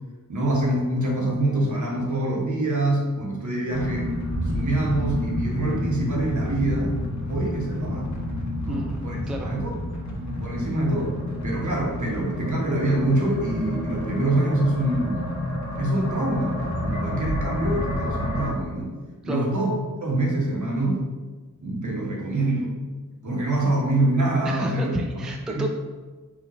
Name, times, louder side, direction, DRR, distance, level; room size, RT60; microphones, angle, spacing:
voice 1, 0.3-4.1 4.4-6.9 7.3-8.1 8.6-9.2 9.4-9.7 10.4-11.2 11.4-15.3 15.8-18.9 19.2-19.7 20.0-21.0 21.6-22.7 23.2-24.9 25.5-25.7, right 1 dB, 55° right, -2 dB, 1.2 m, -25 dB
sound 1, 3.7-18.5, left 1 dB, 55° left, 1.0 m, -29 dB
voice 2, 8.7-9.6 19.2-19.5 24.4-25.7, equal, ahead, 2 dB, 0.4 m, -31 dB
5.0 x 2.6 x 4.1 m, 1.3 s
wide cardioid pair, 85°, 35 cm